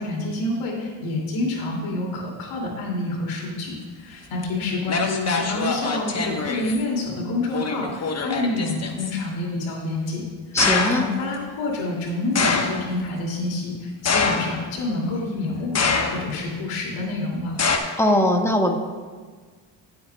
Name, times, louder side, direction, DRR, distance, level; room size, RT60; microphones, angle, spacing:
voice 1, 0.0-10.2 10.5-10.6 10.9-17.5, left 2 dB, 80° left, -2 dB, 2.7 m, -28 dB
sound 1, 4.4-4.5 4.9-6.8 7.5-9.1 10.6-11.1 12.4-12.9 14.1-14.8 15.7-16.4 17.6-17.8, left 4 dB, 35° left, 1.1 m, -24 dB
voice 2, 10.5-11.1 18.0-18.7, left 1 dB, 5° left, 2 dB, 1.5 m, -20 dB
16.5 x 7.7 x 2.3 m, 1.5 s
supercardioid pair, 80°, 47 cm